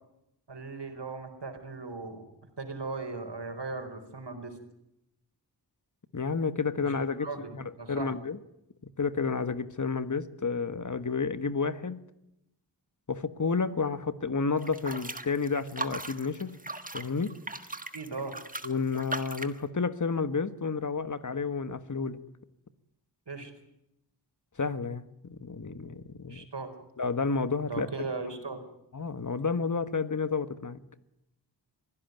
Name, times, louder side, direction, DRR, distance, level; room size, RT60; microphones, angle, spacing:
voice 1, 0.5-2.2 2.6-4.5 6.8-6.9 7.2-8.1 17.9-18.4 23.3-23.5 26.3-26.7 27.7-28.6, right 3 dB, 75° right, 7 dB, 4.5 m, -38 dB
voice 2, 6.1-8.4 9.0-12.0 13.1-16.6 16.9-17.4 18.6-22.2 24.6-26.5 27.0-27.9 28.9-30.8, left 4 dB, 45° left, 13 dB, 1.5 m, -31 dB
sound 1, 14.6-19.6, right 2 dB, 20° right, 1.5 m, -39 dB
24.0 x 16.0 x 9.3 m, 0.83 s
wide cardioid pair, 85°, 42 cm